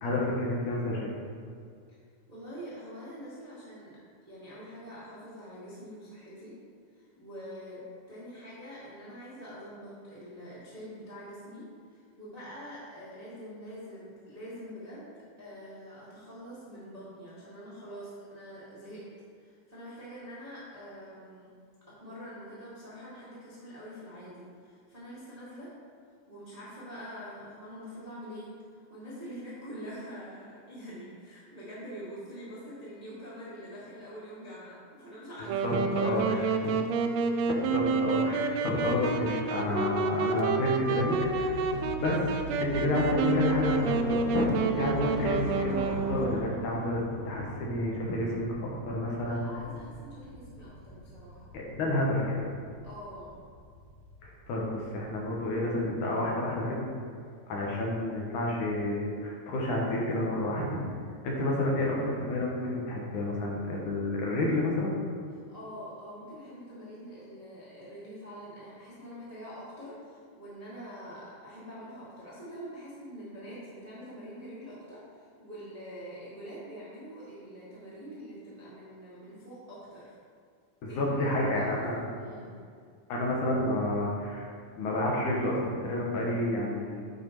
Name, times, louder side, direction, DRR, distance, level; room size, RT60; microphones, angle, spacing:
voice 1, 0.0-1.1 35.6-36.2 36.6-36.7 37.5-41.6 42.0-44.5 44.8-45.7 46.1-49.5 51.5-52.4 54.2-56.8 57.5-60.8 61.2-64.9 80.8-82.0 83.1-84.5 84.8-87.0, left 1 dB, 75° left, -3 dB, 2.7 m, -30 dB
voice 2, 2.3-4.0 4.2-6.5 6.9-15.1 15.4-19.0 19.3-21.5 21.9-25.7 26.3-36.9 49.2-51.5 52.8-53.4 65.5-80.1 80.9-82.5, equal, 20° right, -9 dB, 1.1 m, -45 dB
Wind instrument woodwind instrument, 35.5-46.4, right 4 dB, 90° right, 1.4 m, -29 dB
sound 1, 41.0-55.9, equal, 60° left, 0.9 m, -41 dB
8.3 x 4.6 x 4.6 m, 2.2 s
omnidirectional pair, 3.6 m